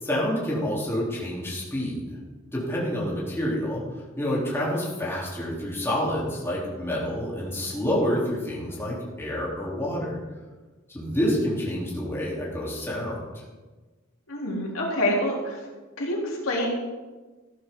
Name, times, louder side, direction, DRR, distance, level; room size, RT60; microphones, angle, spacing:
voice 1, 0.0-2.2 2.5-3.8 4.2-10.2 10.9-13.2, equal, 10° left, -6 dB, 3.5 m, -28 dB
voice 2, 14.3-15.6 16.0-16.7, left 1 dB, 80° left, -3 dB, 3.5 m, -26 dB
15.0 x 12.0 x 3.9 m, 1.3 s
head